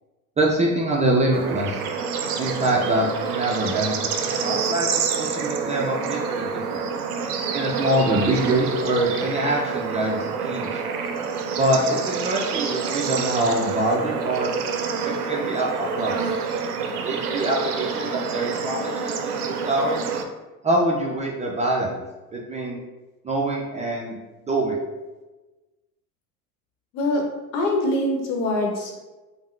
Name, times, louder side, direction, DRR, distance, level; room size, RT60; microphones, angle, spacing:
voice 1, 0.4-1.8 2.4-6.9 7.5-10.8 11.6-14.5 15.0-15.7 15.9-16.2 17.0-19.2 19.4-20.0 20.6-22.0 22.3-22.8 23.2-24.8, right 1 dB, 15° right, -2 dB, 0.4 m, -24 dB
Bird / Insect / Frog, 1.3-20.2, right 5 dB, 85° right, 0.5 m, -27 dB
voice 2, 27.5-29.0, left 1 dB, 70° left, 1 dB, 0.9 m, -23 dB
3.5 x 2.1 x 3.1 m, 1.2 s
hypercardioid pair, 75°, 44 cm